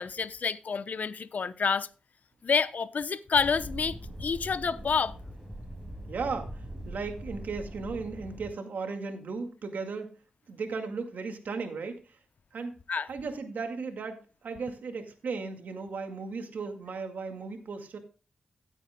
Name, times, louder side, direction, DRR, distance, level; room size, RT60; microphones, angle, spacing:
voice 1, 0.0-1.9 2.4-5.2 12.9-13.1, left 5 dB, 65° left, 0.8 m, -28 dB
sound 1, 3.3-8.5, right 1 dB, 15° right, 4.7 m, -42 dB
voice 2, 6.1-10.1 10.5-12.2 12.5-12.8 13.1-18.0, right 4 dB, 75° right, 2.1 m, -36 dB
17.0 x 8.9 x 2.3 m
cardioid pair, 45°, 3 cm